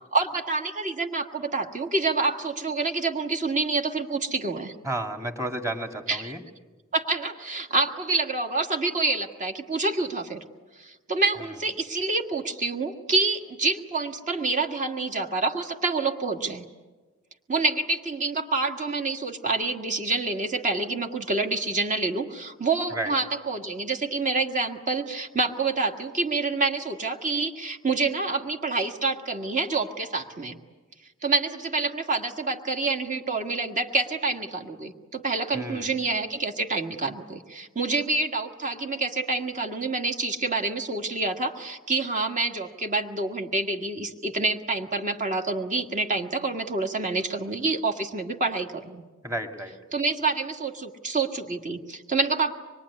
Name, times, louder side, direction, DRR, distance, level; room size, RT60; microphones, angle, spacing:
voice 1, 0.1-4.8 6.1-6.3 6.9-10.4 10.8-16.7 17.5-30.6 31.2-49.0 49.9-52.5, right 3 dB, 35° right, 4 dB, 1.7 m, -27 dB
voice 2, 4.8-6.4 22.9-23.1 35.5-35.9 49.2-49.7, right 1 dB, 15° right, 4 dB, 2.1 m, -31 dB
25.0 x 22.0 x 9.8 m, 1.3 s
head